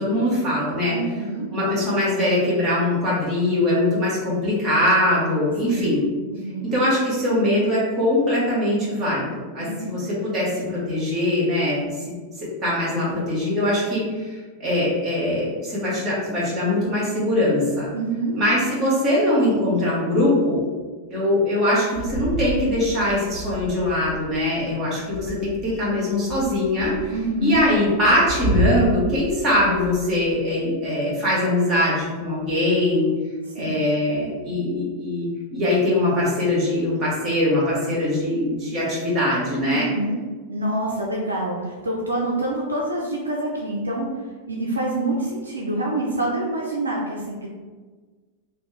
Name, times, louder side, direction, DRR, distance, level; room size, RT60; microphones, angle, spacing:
voice 1, 0.0-1.0 1.5-6.0 6.6-17.9 18.3-20.6 21.1-27.1 27.4-33.1 33.5-39.9, left 1 dB, 25° right, -6 dB, 1.4 m, -22 dB
voice 2, 0.9-1.5 5.7-5.9 6.3-6.7 9.6-9.9 17.9-18.4 27.1-27.6 33.5-33.8 39.7-40.2 40.5-47.5, right 2 dB, 75° right, -2 dB, 0.4 m, -26 dB
sound 1, 21.9-24.5 24.9-25.8 26.3-30.3, right 1 dB, 60° left, 1.0 m, -30 dB
2.9 x 2.1 x 3.3 m, 1.4 s
figure-of-eight pair, 90°, 0 cm